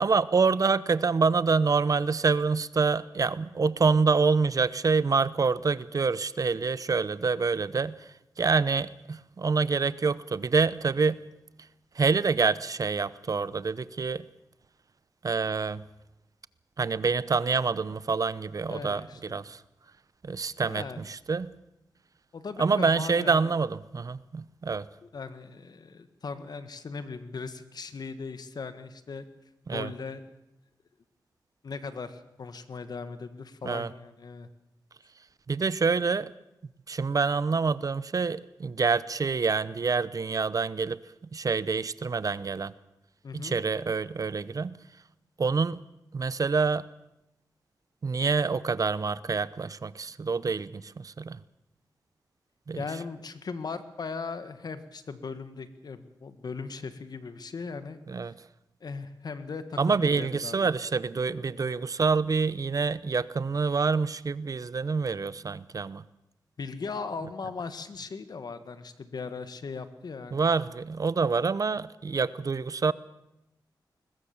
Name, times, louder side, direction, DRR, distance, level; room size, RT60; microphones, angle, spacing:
voice 1, 0.0-8.0 8.4-11.2 12.0-14.2 15.2-15.8 16.8-19.6 20.2-21.5 22.6-24.9 29.7-29.9 33.6-33.9 35.5-36.3 36.9-41.0 41.3-42.7 43.3-44.8 45.4-45.8 46.1-46.8 48.0-51.4 52.7-52.8 58.1-58.3 59.8-66.0 70.3-72.9, right 4 dB, 50° right, 17 dB, 0.8 m, -26 dB
voice 2, 18.7-19.4 20.6-21.0 22.3-23.5 25.0-29.2 29.7-30.3 31.6-34.5 43.2-43.6 52.7-58.0 58.8-60.7 61.6-61.7 66.6-70.5, left 4 dB, 65° left, 11 dB, 1.8 m, -38 dB
21.5 x 20.5 x 7.2 m, 0.86 s
cardioid pair, 75°, 7 cm